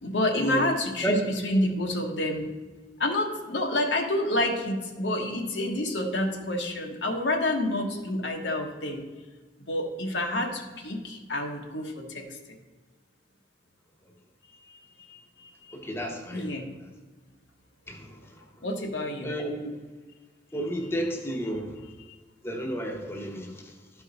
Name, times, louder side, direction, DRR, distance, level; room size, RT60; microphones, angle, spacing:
voice 1, 0.0-2.5 3.0-9.0 9.7-12.6 15.0-15.7 16.3-16.7 18.6-19.3, left 1 dB, 80° left, 2 dB, 1.2 m, -29 dB
voice 2, 15.7-16.5 17.9-18.4 19.2-19.7 20.5-21.9 22.4-23.7, right 1 dB, 15° left, 1 dB, 0.8 m, -31 dB
12.0 x 4.7 x 4.0 m, 1.3 s
head